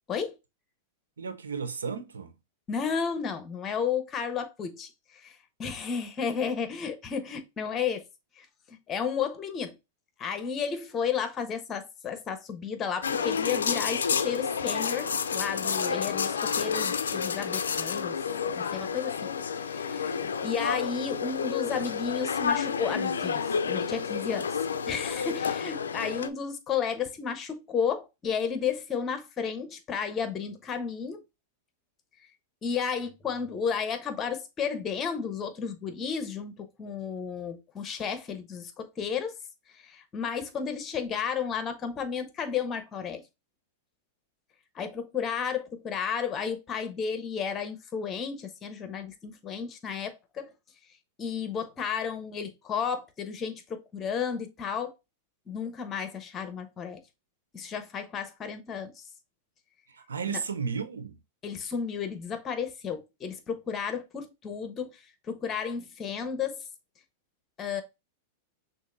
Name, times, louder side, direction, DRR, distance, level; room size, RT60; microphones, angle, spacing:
voice 1, 1.2-2.3 59.9-61.2, right 6 dB, 90° right, 0.7 m, -34 dB
voice 2, 2.7-8.0 8.4-9.7 10.2-18.2 18.6-19.3 19.6-31.2 32.6-39.3 39.7-43.2 44.7-50.5 51.2-54.9 55.5-57.0 57.5-59.0 60.3-60.4 61.4-66.6 67.6-67.8, left 6 dB, 30° left, 1.0 m, -33 dB
sound 1, 13.0-26.3, left 6 dB, 85° left, 0.4 m, -30 dB
6.2 x 2.6 x 2.6 m
hypercardioid pair, 105°, 0 cm